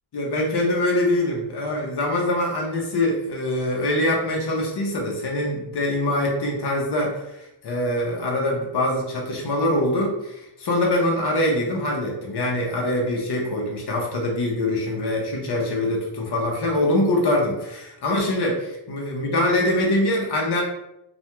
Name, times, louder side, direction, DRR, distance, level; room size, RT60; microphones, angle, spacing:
voice 1, 0.1-20.6, left 1 dB, 55° left, -1 dB, 0.6 m, -24 dB
2.3 x 2.2 x 2.8 m, 0.87 s
wide cardioid pair, 170°, 49 cm